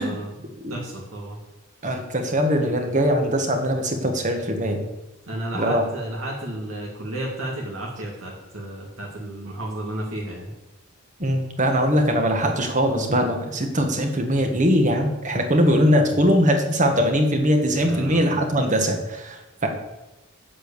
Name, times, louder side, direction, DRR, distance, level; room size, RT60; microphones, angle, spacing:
voice 1, 0.0-1.4 5.3-10.5 17.8-18.4, right 1 dB, 75° right, -3 dB, 2.3 m, -32 dB
voice 2, 1.8-4.8 5.5-5.8 11.2-19.7, equal, 35° right, 4 dB, 1.6 m, -21 dB
8.1 x 8.1 x 7.0 m, 0.99 s
head